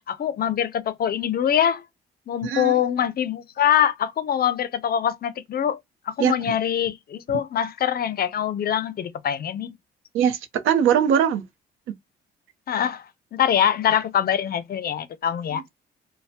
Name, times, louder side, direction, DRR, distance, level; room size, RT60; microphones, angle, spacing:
voice 1, 0.0-1.9 2.3-5.8 6.1-9.8 12.7-15.6, left 9 dB, 50° left, 0.5 m, -24 dB
voice 2, 2.4-2.8 6.2-6.3 10.1-11.4, right 8 dB, 85° right, 0.6 m, -21 dB
3.1 x 2.1 x 2.7 m
cardioid pair, 90°, 20 cm